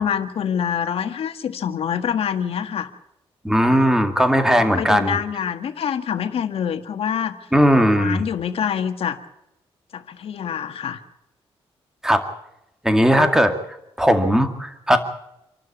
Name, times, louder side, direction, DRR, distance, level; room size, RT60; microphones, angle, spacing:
voice 1, 0.0-2.9 3.7-3.9 4.4-7.4 7.7-9.2 9.9-11.0 13.1-13.3, left 8 dB, 70° left, 8 dB, 1.8 m, -26 dB
voice 2, 3.4-5.2 7.5-8.2 12.0-12.2 12.8-13.5 14.0-15.0, equal, 5° right, 7 dB, 2.1 m, -17 dB
27.0 x 12.5 x 8.6 m, 0.85 s
wide cardioid pair, 130°, 10 cm